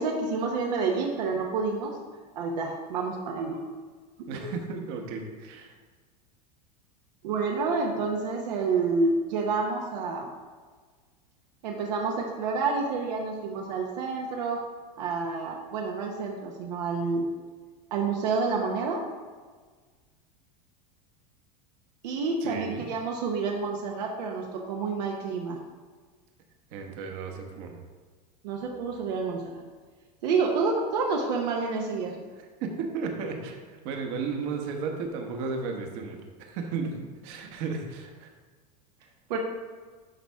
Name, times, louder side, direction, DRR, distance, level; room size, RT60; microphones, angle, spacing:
voice 1, 0.0-2.0 2.3-3.6 7.2-10.3 11.6-14.6 15.0-17.3 17.9-19.0 22.0-25.6 28.4-29.6 30.2-32.2 39.3-39.4, right 4 dB, 80° right, 0 dB, 1.0 m, -28 dB
voice 2, 4.3-5.7 22.4-22.9 26.7-27.8 32.6-37.0 37.2-38.3, right 4 dB, 60° right, 3 dB, 1.2 m, -34 dB
11.0 x 4.2 x 3.5 m, 1.5 s
supercardioid pair, 135°, 21 cm